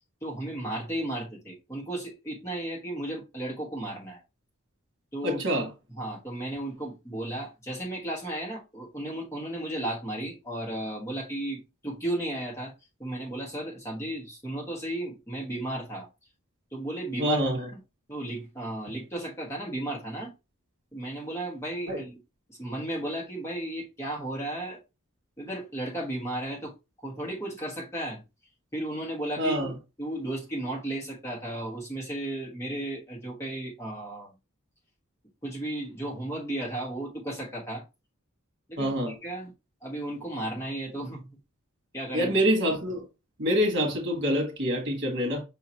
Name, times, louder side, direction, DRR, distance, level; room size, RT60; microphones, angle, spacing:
voice 1, 0.2-4.2 5.1-5.4 6.0-12.7 13.0-16.1 16.7-17.4 18.1-20.3 20.9-22.2 22.5-24.8 25.4-26.7 27.0-28.2 28.7-34.3 35.4-37.8 38.7-39.5 39.8-41.3 41.9-42.3, right 1 dB, 15° left, 1.3 m, -34 dB
voice 2, 5.2-5.7 17.2-17.7 21.9-22.0 29.4-29.7 38.8-39.1 42.1-43.1 43.4-45.4, equal, 55° right, 1.4 m, -26 dB
5.6 x 2.9 x 2.8 m
head